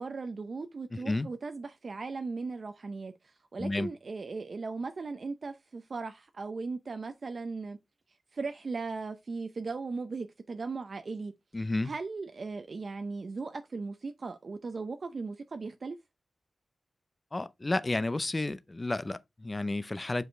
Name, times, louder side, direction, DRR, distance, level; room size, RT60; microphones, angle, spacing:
voice 1, 0.0-7.8 8.3-11.3 11.8-16.0, right 4 dB, 45° right, 0.6 m, -38 dB
voice 2, 0.9-1.3 3.6-3.9 11.5-11.9 17.3-20.2, left 2 dB, 20° left, 0.5 m, -31 dB
8.0 x 4.8 x 3.2 m
wide cardioid pair, 150°, 0 cm